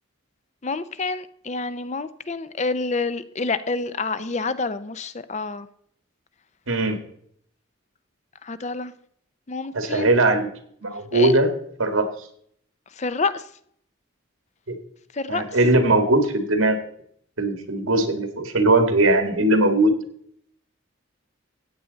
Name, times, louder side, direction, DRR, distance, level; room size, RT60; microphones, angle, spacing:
voice 1, 0.6-5.7 8.4-8.9 9.5-10.1 11.1-11.3 13.0-13.4 15.1-15.4, left 4 dB, 35° left, 13 dB, 0.6 m, -28 dB
voice 2, 6.7-7.0 9.7-10.5 10.8-11.5 11.8-12.1 14.7-14.8 15.3-16.8 17.4-19.9, right 2 dB, 85° right, 7 dB, 1.8 m, -19 dB
14.5 x 9.0 x 4.0 m, 0.66 s
head